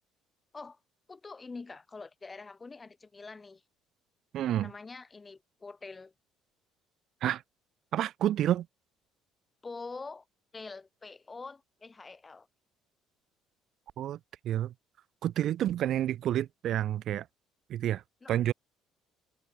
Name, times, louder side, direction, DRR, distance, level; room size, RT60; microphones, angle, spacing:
voice 1, 1.1-3.6 4.6-6.1 9.6-10.2 10.5-12.5 18.2-18.3, left 4 dB, 20° left, 7.9 m, -45 dB
voice 2, 4.3-4.7 7.2-7.4 7.9-8.7 14.0-14.2 14.4-14.7 15.2-17.3 17.7-18.0 18.3-18.5, right 12 dB, 55° right, 2.0 m, -29 dB
cardioid pair, 130°, 0 cm